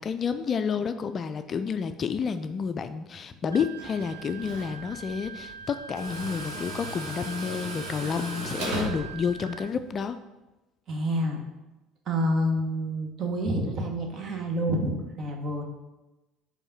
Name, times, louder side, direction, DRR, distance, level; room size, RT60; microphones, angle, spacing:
voice 1, 0.0-10.2, left 6 dB, 35° left, 10 dB, 0.4 m, -30 dB
Wind instrument woodwind instrument, 3.5-9.7, right 5 dB, 80° right, 0.3 m, -43 dB
Tools, 3.8-10.0, right 1 dB, 60° right, 1.2 m, -38 dB
voice 2, 10.9-11.4 12.1-15.6, equal, 40° right, 2 dB, 1.2 m, -28 dB
5.3 x 4.2 x 5.8 m, 1.1 s
figure-of-eight pair, 60°, 0 cm